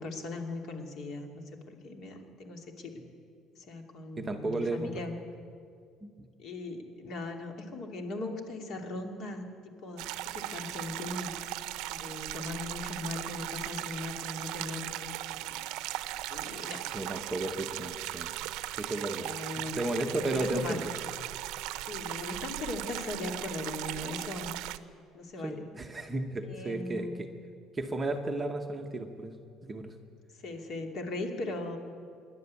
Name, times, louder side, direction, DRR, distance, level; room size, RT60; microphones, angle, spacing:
voice 1, 0.0-2.9 3.5-5.1 6.4-9.4 9.8-11.3 11.9-15.6 16.3-16.8 19.2-19.8 20.1-20.8 21.8-24.6 25.1-25.6 26.4-27.2 30.4-31.8, left 2 dB, 45° left, 3 dB, 2.5 m, -39 dB
voice 2, 4.2-5.0 6.0-6.1 16.6-18.3 18.8-19.3 19.7-20.9 25.4-27.3 27.7-29.3 29.6-30.0, right 2 dB, 15° right, 3 dB, 0.9 m, -34 dB
sound 1, 10.0-24.8, right 15 dB, 75° right, 0.7 m, -38 dB
25.0 x 11.5 x 9.6 m, 2.3 s
cardioid pair, 180°, 0 cm